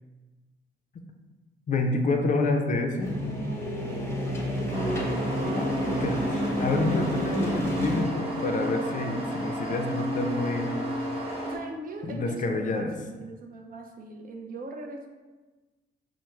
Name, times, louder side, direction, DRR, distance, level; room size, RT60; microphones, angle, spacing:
voice 1, 1.7-3.2 5.5-10.7 12.0-12.9, left 2 dB, 40° left, 4 dB, 0.4 m, -28 dB
sound 1, 3.0-8.0, equal, 15° left, 0.8 m, -29 dB
sound 2, 4.7-11.6, equal, 30° right, 0.9 m, -32 dB
voice 2, 11.4-15.1, right 2 dB, 45° right, 3 dB, 0.5 m, -40 dB
4.5 x 2.0 x 3.1 m, 1.2 s
cardioid pair, 90°, 20 cm